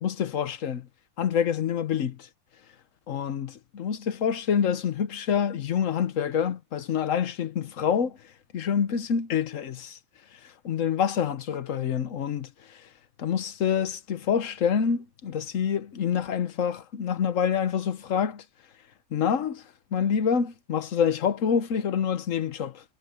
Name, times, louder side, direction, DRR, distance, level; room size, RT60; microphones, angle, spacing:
voice 1, 0.0-0.9 1.2-2.2 3.1-8.2 8.5-10.0 10.6-12.5 13.2-18.4 19.1-19.6 19.9-22.8, left 7 dB, 70° left, 1.4 m, -27 dB
omnidirectional pair, 1.4 m